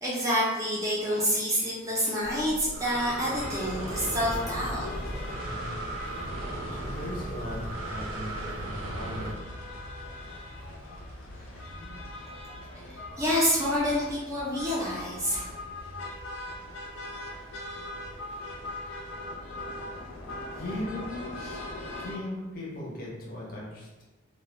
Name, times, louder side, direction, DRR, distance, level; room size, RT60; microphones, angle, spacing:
voice 1, 0.0-5.1 12.7-15.5, equal, 15° right, -6 dB, 0.4 m, -28 dB
Breathing, 2.2-9.3, right 1 dB, 75° right, 0.5 m, -37 dB
sound 1, 3.3-22.1, left 1 dB, 90° left, 0.5 m, -40 dB
voice 2, 5.4-5.8 6.7-9.4 20.5-21.3 22.0-24.0, left 1 dB, 45° left, -4 dB, 0.6 m, -38 dB
2.1 x 2.1 x 3.1 m, 1.1 s
head